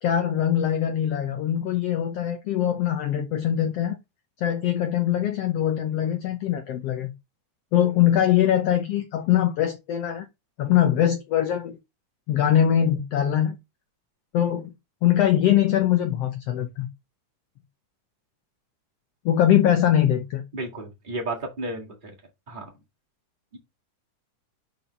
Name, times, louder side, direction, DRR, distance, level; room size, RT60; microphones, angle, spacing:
voice 1, 0.0-3.9 4.4-7.1 7.7-10.3 10.6-11.8 12.3-13.5 14.3-14.7 15.0-16.9 19.2-20.4, left 10 dB, 70° left, 1.6 m, -22 dB
voice 2, 20.5-22.1 22.5-22.7 23.5-23.6, right 2 dB, 20° right, 1.3 m, -33 dB
5.3 x 4.4 x 5.5 m
omnidirectional pair, 3.6 m